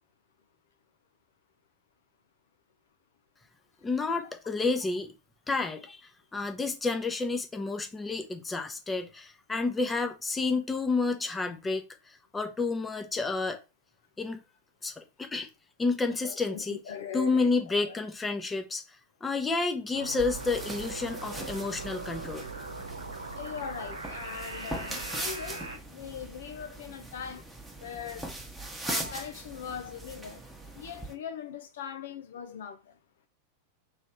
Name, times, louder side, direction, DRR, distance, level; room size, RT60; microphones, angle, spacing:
voice 1, 3.8-5.1 5.5-6.0 6.3-11.8 12.3-13.6 14.2-14.4 14.8-15.5 15.8-16.8 17.1-18.8 19.2-22.5, left 3 dB, 15° left, 0.8 m, -30 dB
voice 2, 16.1-18.0 23.4-27.4 27.8-28.3 28.8-30.4 30.7-32.8, left 8 dB, 60° left, 0.5 m, -40 dB
sound 1, 19.9-25.8, right 3 dB, 80° right, 0.9 m, -40 dB
sound 2, 20.2-31.1, right 2 dB, 5° right, 1.1 m, -40 dB
3.5 x 3.2 x 4.4 m
figure-of-eight pair, 90°, 0 cm